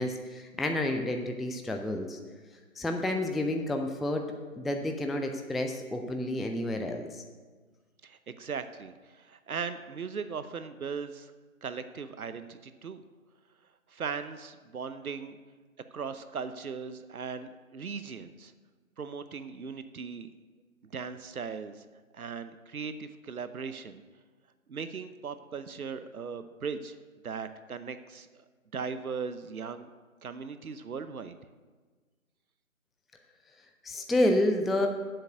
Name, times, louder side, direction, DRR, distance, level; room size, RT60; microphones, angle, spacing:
voice 1, 0.0-2.2 2.8-4.2 4.6-7.2 33.8-34.9, left 1 dB, ahead, 4 dB, 0.4 m, -29 dB
voice 2, 8.0-11.3 11.6-13.0 13.9-15.4 15.9-18.5 19.0-20.3 20.9-21.8 22.1-24.0 24.7-27.0 27.2-28.3 28.7-29.9 30.2-31.4, right 5 dB, 85° right, 11 dB, 0.8 m, -38 dB
7.8 x 6.7 x 7.9 m, 1.4 s
figure-of-eight pair, 170°, 42 cm